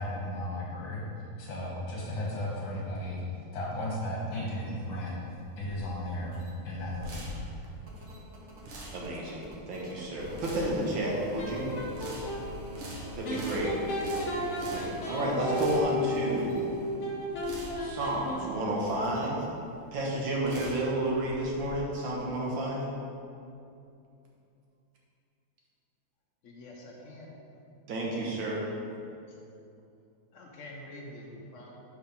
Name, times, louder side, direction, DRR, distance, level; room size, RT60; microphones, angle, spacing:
voice 1, 0.0-3.2 3.5-6.4 6.6-7.6, left 1 dB, 65° left, -5 dB, 2.0 m, -35 dB
sound 1, 5.2-21.7, right 1 dB, 90° right, 2.0 m, -45 dB
sound 2, 7.5-16.9 18.4-18.5, left 1 dB, 45° right, 1.2 m, -47 dB
voice 2, 8.9-11.7 13.2-13.7 14.7-16.7 17.8-19.5 19.9-22.8 27.9-28.6, right 1 dB, 65° right, -3 dB, 1.9 m, -31 dB
sound 3, 11.0-12.4 13.2-18.7, left 1 dB, 45° left, 1.0 m, -34 dB
voice 3, 26.4-27.4 29.3-29.4 30.3-31.8, left 1 dB, 85° left, -2 dB, 0.6 m, -46 dB
5.8 x 4.7 x 5.2 m, 2.6 s
omnidirectional pair, 2.3 m